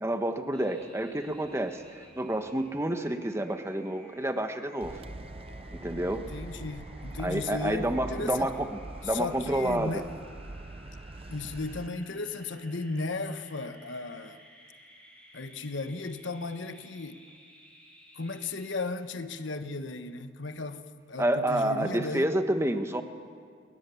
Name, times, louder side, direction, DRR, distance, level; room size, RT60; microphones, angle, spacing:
voice 1, 0.0-5.0 5.7-6.3 7.2-8.8 9.0-10.0 21.2-23.0, right 1 dB, 15° right, 1.1 m, -29 dB
sound 1, 0.5-18.7, equal, 5° left, 5.6 m, -55 dB
sound 2, 4.8-11.9, right 2 dB, 30° right, 0.5 m, -43 dB
voice 2, 6.1-8.5 9.0-10.1 11.3-14.4 15.3-17.2 18.1-22.3, left 3 dB, 85° left, 1.2 m, -35 dB
29.5 x 21.0 x 7.1 m
head